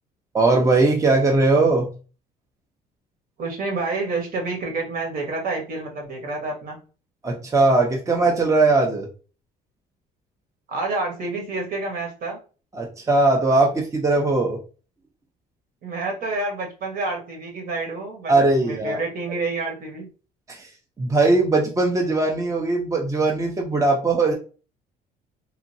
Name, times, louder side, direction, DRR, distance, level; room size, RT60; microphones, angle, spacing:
voice 1, 0.3-1.9 7.2-9.1 12.7-14.6 18.3-19.0 20.5-20.7 21.0-24.3, right 3 dB, 20° right, 0 dB, 0.6 m, -19 dB
voice 2, 3.4-6.8 10.7-12.4 15.8-18.3 18.6-20.1, right 3 dB, 60° right, 1 dB, 1.3 m, -28 dB
2.9 x 2.5 x 2.6 m, 0.35 s
cardioid pair, 110°, 17 cm